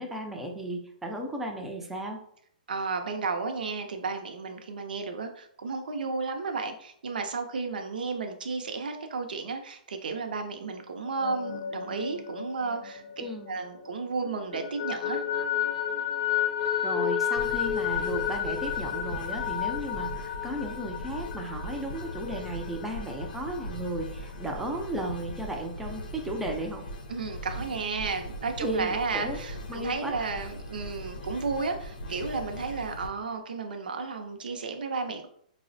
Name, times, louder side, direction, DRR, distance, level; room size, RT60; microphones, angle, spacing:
voice 1, 0.0-2.2 13.2-13.6 16.8-26.8 28.6-29.4 29.7-30.3, right 1 dB, 5° right, 1 dB, 0.4 m, -34 dB
voice 2, 2.7-13.0 13.5-15.2 27.1-35.3, right 4 dB, 85° right, 5 dB, 0.5 m, -33 dB
sound 1, 11.1-13.9 14.2-23.7, left 9 dB, 40° left, 0.6 m, -32 dB
sound 2, 17.4-33.1, equal, 85° left, 0.6 m, -40 dB
4.7 x 2.0 x 2.6 m, 0.66 s
hypercardioid pair, 160°, 5 cm